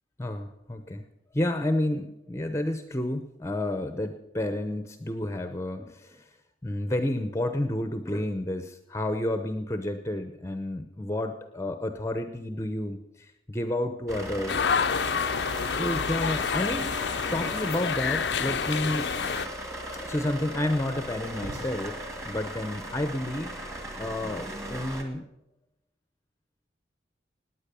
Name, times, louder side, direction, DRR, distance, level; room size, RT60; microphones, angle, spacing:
voice 1, 0.2-1.0 1.3-6.2 6.6-14.7 15.6-17.0 17.3-19.1 20.0-22.0 22.2-23.6 24.0-25.3, left 1 dB, 15° left, 8 dB, 0.7 m, -30 dB
sound 1, 14.1-25.0, right 1 dB, 15° right, 2.0 m, -37 dB
sound 2, 14.5-19.5, left 6 dB, 70° left, 0.5 m, -28 dB
sound 3, 21.1-24.2, equal, 90° right, 2.4 m, -49 dB
18.5 x 9.4 x 6.8 m, 0.90 s
head